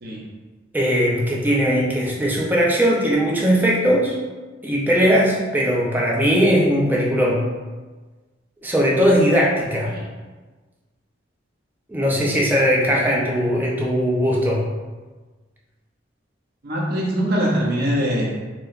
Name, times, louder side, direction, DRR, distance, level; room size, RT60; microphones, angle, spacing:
voice 1, 0.7-4.2 4.6-7.4 8.6-9.9 11.9-14.6, equal, 10° right, -3 dB, 0.5 m, -19 dB
voice 2, 16.6-18.3, equal, 55° right, -3 dB, 0.6 m, -22 dB
4.4 x 2.0 x 2.5 m, 1.3 s
head